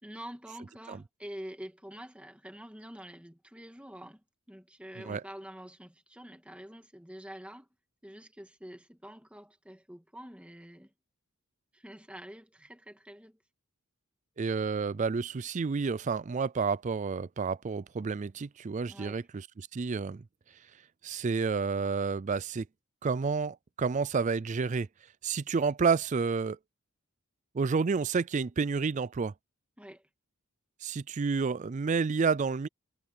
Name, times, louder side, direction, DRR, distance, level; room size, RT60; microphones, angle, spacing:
voice 1, 0.0-4.2 4.5-7.7 8.0-10.9 11.7-13.4 18.9-19.2 29.8-30.1, equal, 5° right, 1.9 m, -47 dB
voice 2, 14.4-19.5 19.7-20.2 21.0-22.6 23.0-24.9 25.2-26.6 27.5-29.3 30.8-32.7, right 5 dB, 35° right, 0.4 m, -30 dB
head